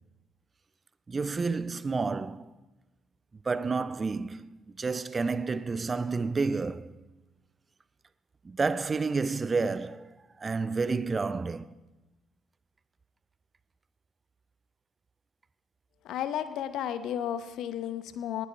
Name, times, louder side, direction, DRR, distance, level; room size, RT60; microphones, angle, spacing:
voice 1, 1.1-2.5 3.4-6.9 8.4-11.7, right 4 dB, 30° right, 0.4 m, -30 dB
voice 2, 16.0-18.5, left 10 dB, 60° left, 0.8 m, -33 dB
19.0 x 10.5 x 4.7 m
figure-of-eight pair, 45°, 0 cm